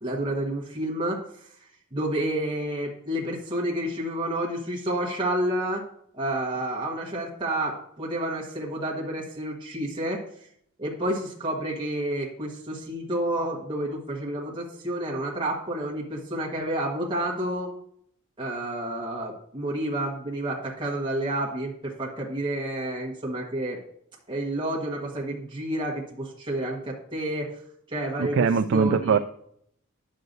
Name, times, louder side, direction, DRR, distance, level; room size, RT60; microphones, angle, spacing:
voice 1, 0.0-1.5 1.9-5.8 6.1-10.5 10.8-17.7 18.4-23.8 24.3-27.6 27.9-29.2, right 1 dB, 20° right, -4 dB, 1.3 m, -30 dB
voice 2, 28.2-29.2, right 5 dB, 55° right, 8 dB, 0.3 m, -22 dB
10.5 x 6.4 x 2.6 m, 0.69 s
head